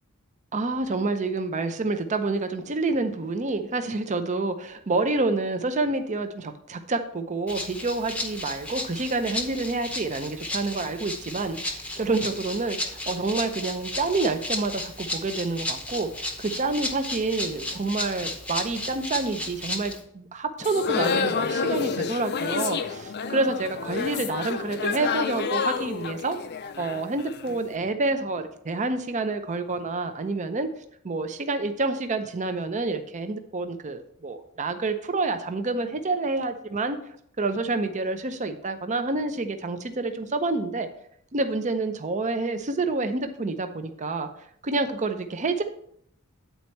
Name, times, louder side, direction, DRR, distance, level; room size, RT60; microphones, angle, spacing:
voice 1, 0.5-16.1 16.4-26.4 26.8-30.7 31.0-37.0 37.4-40.9 41.3-45.6, right 3 dB, 35° right, 7 dB, 0.6 m, -28 dB
Rattle (instrument), 7.5-20.0, left 1 dB, 5° left, 0.8 m, -34 dB
sound 1, 20.6-27.6, left 5 dB, 50° left, 0.5 m, -29 dB
9.2 x 4.2 x 4.5 m, 0.68 s
head